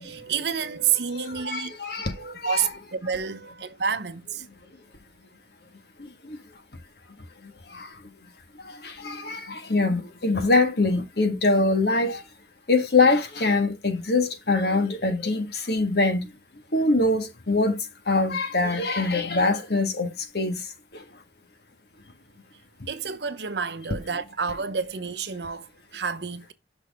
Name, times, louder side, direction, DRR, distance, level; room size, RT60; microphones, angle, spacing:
voice 1, 0.0-1.7 2.2-4.4 22.9-26.5, right 7 dB, 70° right, 0.8 m, -29 dB
voice 2, 1.2-2.1 2.4-2.7 7.7-7.9 8.8-12.2 12.7-16.2 16.7-17.8 18.1-20.1 20.3-20.6, left 3 dB, 60° left, 1.5 m, -23 dB
6.3 x 6.2 x 3.5 m
head